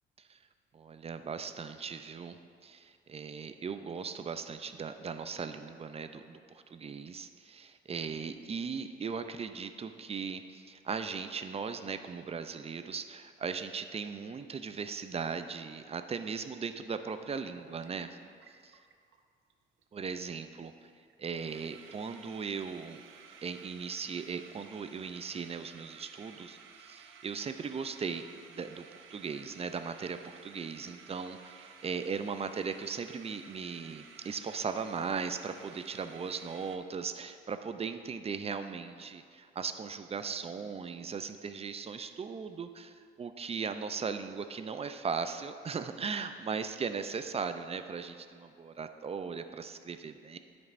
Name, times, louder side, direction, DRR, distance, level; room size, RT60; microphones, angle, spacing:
voice 1, 0.7-2.4 2.6-18.2 18.6-18.8 19.9-20.9 21.2-23.0 23.4-50.4, right 5 dB, 30° right, 9 dB, 0.4 m, -38 dB
sound 1, 17.1-17.2 17.5-19.2 19.5-19.6 19.8-20.1 20.3-20.4 20.8-20.9 21.1-36.8, right 6 dB, 85° right, 0.6 m, -55 dB
12.5 x 5.3 x 2.6 m, 2.2 s
cardioid pair, 90°, 20 cm